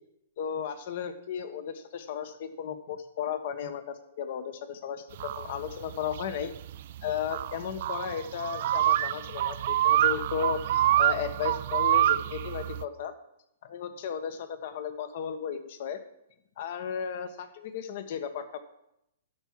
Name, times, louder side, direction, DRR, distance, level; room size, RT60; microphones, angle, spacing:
voice 1, 0.4-6.5 7.0-13.1 13.6-16.0 16.6-18.6, left 8 dB, 55° left, 10 dB, 1.1 m, -35 dB
sound 1, 5.2-12.8, right 13 dB, 55° right, 0.3 m, -27 dB
12.0 x 4.6 x 7.3 m, 0.80 s
hypercardioid pair, 125°, 0 cm